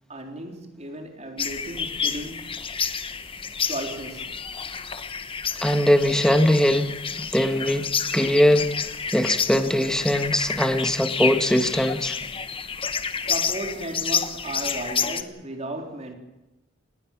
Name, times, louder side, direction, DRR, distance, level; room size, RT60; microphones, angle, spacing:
voice 1, 0.1-2.6 3.7-4.4 13.2-16.2, right 1 dB, 35° right, 3.8 m, -35 dB
sound 1, 1.4-15.2, left 6 dB, 25° left, 1.2 m, -30 dB
voice 2, 5.6-6.9 7.2-12.2, equal, 5° left, 1.6 m, -21 dB
27.5 x 19.5 x 7.4 m
head